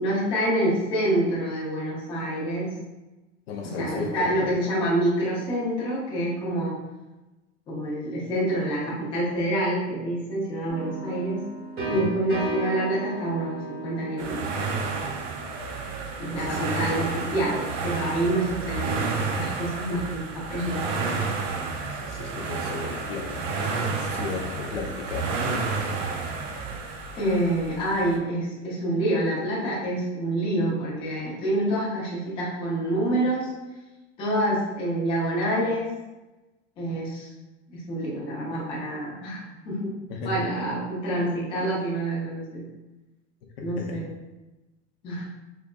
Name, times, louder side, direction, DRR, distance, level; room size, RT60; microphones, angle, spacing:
voice 1, 0.0-2.8 3.6-6.8 7.7-11.5 11.9-14.8 16.2-21.3 27.2-33.5 34.2-35.9 36.8-37.3 37.7-39.9 40.2-42.6 43.6-44.1 45.0-45.3, right 1 dB, 15° left, -7 dB, 0.6 m, -27 dB
voice 2, 3.5-4.5 11.9-12.1 16.3-16.6 16.9-17.0 21.9-25.7 40.1-40.3 43.6-44.0, left 5 dB, 55° left, -1 dB, 0.7 m, -35 dB
sound 1, 10.7-16.4, right 2 dB, 25° right, 1.1 m, -35 dB
sound 2, 14.2-28.2, right 4 dB, 80° right, 0.7 m, -31 dB
3.9 x 3.2 x 2.2 m, 1.1 s
supercardioid pair, 175°, 37 cm